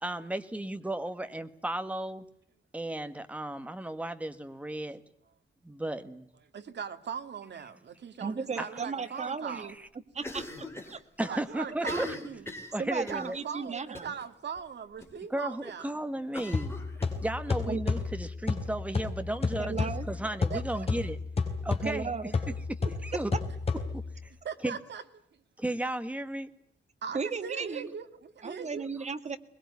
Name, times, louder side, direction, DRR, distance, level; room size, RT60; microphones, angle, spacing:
voice 1, 0.0-2.2 2.7-5.0 5.6-6.2 8.6-8.7 9.5-9.6 11.2-12.1 12.7-13.4 15.3-16.7 17.2-21.2 21.6-22.1 23.0-23.3 23.9-24.0 24.6-24.8 25.6-26.5, right 1 dB, 5° right, 9 dB, 1.4 m, -34 dB
voice 2, 6.5-9.7 11.2-12.5 13.1-15.9 20.5-20.9 24.4-25.0 27.0-28.8, right 7 dB, 65° right, 8 dB, 2.1 m, -40 dB
voice 3, 8.2-9.7 10.1-11.0 11.8-12.0 12.8-14.1 17.7-17.8 19.6-20.1 21.8-22.4 22.8-22.9 27.1-27.9 28.4-29.4, right 5 dB, 35° right, 9 dB, 1.7 m, -35 dB
Cough, 10.2-11.0 11.2-11.3 11.7-13.3 13.9-14.2 14.6-14.7 15.0-15.1 16.3-17.6, left 1 dB, 10° left, 4.0 m, -40 dB
sound 1, 16.5-24.2, left 4 dB, 30° left, 4.5 m, -32 dB
22.0 x 21.5 x 9.5 m, 0.69 s
wide cardioid pair, 160°, 20 cm